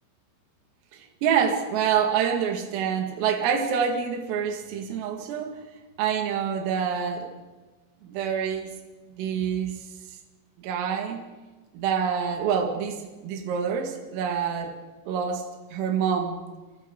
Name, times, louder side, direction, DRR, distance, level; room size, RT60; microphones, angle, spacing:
voice 1, 0.9-5.6 6.0-7.3 8.0-8.7 9.1-9.8 10.6-11.2 11.7-13.0 13.2-14.8 15.1-16.4, right 7 dB, 80° right, 3 dB, 4.7 m, -26 dB
30.0 x 25.0 x 3.9 m, 1.3 s
omnidirectional pair, 5.9 m